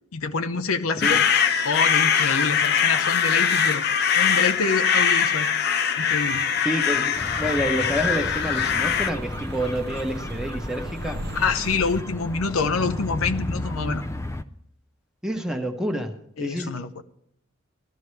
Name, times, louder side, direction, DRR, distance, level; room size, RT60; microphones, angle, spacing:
voice 1, 0.1-1.2 1.6-3.8 4.1-5.5 6.0-6.4 11.3-14.0 16.4-16.9, left 4 dB, 85° left, 9 dB, 0.7 m, -26 dB
sound 1, 1.0-9.1, left 7 dB, 50° left, 0.6 m, -22 dB
voice 2, 6.6-11.2 15.2-16.7, equal, 5° right, 4 dB, 0.9 m, -28 dB
sound 2, 7.1-14.4, left 1 dB, 15° left, 0.4 m, -33 dB
sound 3, 7.4-12.0, right 1 dB, 45° right, 0.6 m, -39 dB
18.0 x 13.0 x 3.2 m, 0.74 s
head